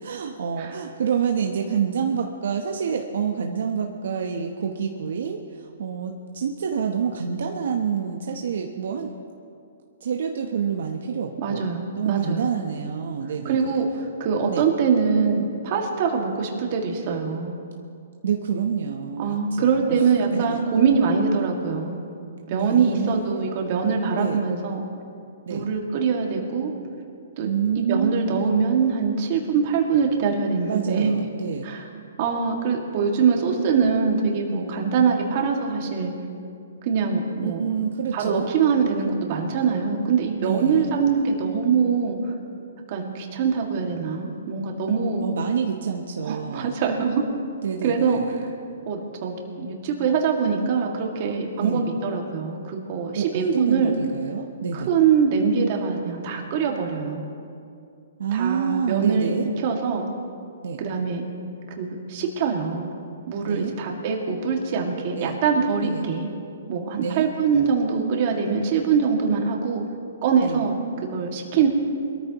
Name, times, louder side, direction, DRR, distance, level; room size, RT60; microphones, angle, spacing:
voice 1, 0.0-9.1 10.0-11.7 12.0-13.8 14.5-14.7 18.2-20.0 20.3-20.6 22.5-23.5 24.1-24.4 25.5-25.7 27.4-28.4 30.7-31.7 37.4-38.5 40.4-40.9 45.2-46.7 47.6-48.3 51.6-51.9 53.2-54.9 58.2-59.5 60.6-60.8 63.4-63.7 65.1-65.4 65.8-66.0 67.0-67.3 70.4-70.7, right 7 dB, 70° right, 2 dB, 1.0 m, -27 dB
voice 2, 11.4-12.5 13.5-17.6 19.2-22.0 22.5-24.8 25.5-26.7 27.4-27.5 27.8-31.1 31.6-31.9 32.2-36.1 36.8-37.8 38.1-42.3 42.9-45.2 46.2-47.2 47.8-48.2 48.9-54.0 54.7-57.2 58.3-59.3 59.6-60.1 60.8-61.2 61.8-62.9 63.3-66.3 66.7-69.8 70.2-70.8 71.1-71.7, right 5 dB, 40° right, 1 dB, 2.1 m, -23 dB
22.5 x 13.5 x 3.0 m, 2.4 s
hypercardioid pair, 150°, 0 cm